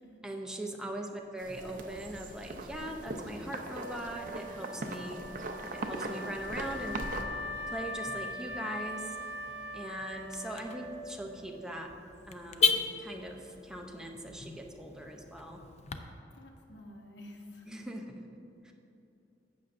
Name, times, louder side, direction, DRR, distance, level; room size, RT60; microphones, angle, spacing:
voice 1, 0.2-5.2 5.7-7.2 7.7-9.1 9.7-11.9 12.3-15.6 17.6-18.2 18.6-18.7, right 1 dB, 5° right, 1 dB, 0.6 m, -41 dB
sound 1, 1.4-7.2, right 2 dB, 50° right, 0.6 m, -40 dB
Wind instrument woodwind instrument, 3.7-11.3, left 1 dB, 85° right, 0.8 m, -41 dB
Car / Alarm, 6.8-16.0, left 5 dB, 40° left, 0.4 m, -37 dB
voice 2, 16.3-17.9, left 1 dB, 75° left, 2 dB, 1.0 m, -51 dB
11.5 x 7.9 x 2.6 m, 2.8 s
head